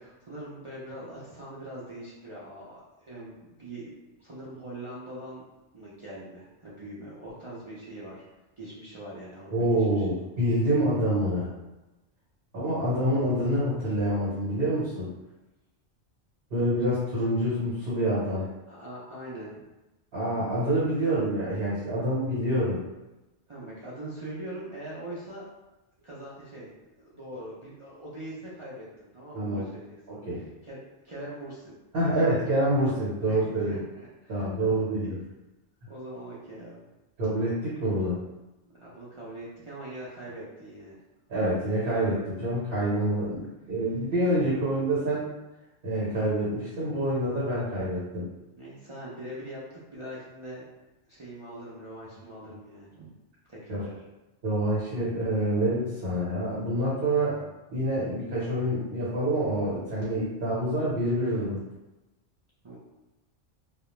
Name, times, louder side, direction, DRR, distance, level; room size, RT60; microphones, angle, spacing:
voice 1, 0.0-3.9 4.2-5.4 5.7-8.2 8.6-10.0 18.7-19.6 23.5-25.5 26.0-26.7 27.0-29.9 30.3-31.7 33.3-34.9 35.8-36.8 38.8-41.0 48.5-50.7 51.1-53.1 53.5-53.9 62.6-62.8, right 1 dB, 40° right, -9 dB, 0.4 m, -42 dB
voice 2, 9.5-11.5 12.5-15.1 16.5-18.5 20.1-22.8 29.3-29.6 30.1-30.4 31.9-33.8 34.3-35.2 37.2-38.2 41.3-45.3 45.8-48.3 52.5-52.6 53.7-53.9 54.4-57.4 57.7-61.6, right 1 dB, 60° right, -8 dB, 1.1 m, -27 dB
2.3 x 2.1 x 2.9 m, 1.0 s
omnidirectional pair, 1.2 m